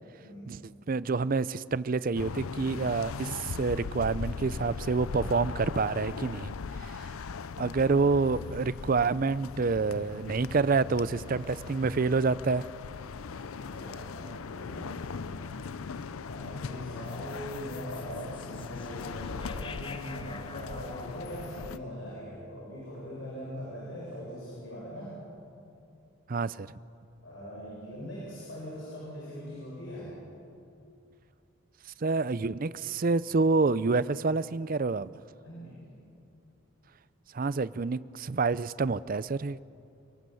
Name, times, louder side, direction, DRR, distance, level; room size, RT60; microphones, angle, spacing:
voice 1, 0.2-0.5 13.4-15.4 16.2-25.2 27.2-30.1 35.4-35.9, equal, 60° left, -6 dB, 8.0 m, -41 dB
voice 2, 0.9-6.5 6.8-7.1 7.6-12.7 26.3-26.7 32.0-35.1 37.3-39.6, right 4 dB, 40° right, 17 dB, 0.5 m, -28 dB
sound 1, 2.1-21.8, left 5 dB, 85° left, 0.5 m, -39 dB
sound 2, 10.0-11.7 12.4-16.1 16.4-16.5 16.8-17.6 19.1-19.2, right 1 dB, 25° right, 5.1 m, -58 dB
filter movement, 17.0-23.4, left 4 dB, 25° left, 0.8 m, -48 dB
30.0 x 19.0 x 7.8 m, 2.6 s
head